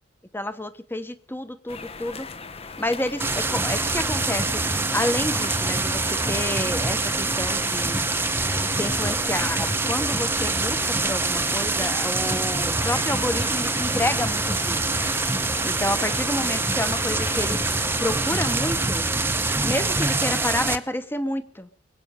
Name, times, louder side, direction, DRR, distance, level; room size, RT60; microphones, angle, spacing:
voice 1, 0.3-2.3 2.8-4.7 4.9-8.0 8.6-14.8 15.4-17.6 18.0-19.1 19.6-21.7, left 1 dB, 10° left, 11 dB, 1.2 m, -29 dB
sound 1, 1.7-18.7, left 4 dB, 35° left, 1.0 m, -39 dB
sound 2, 3.2-20.8, right 3 dB, 15° right, 0.9 m, -25 dB
22.5 x 8.7 x 6.8 m, 0.43 s
head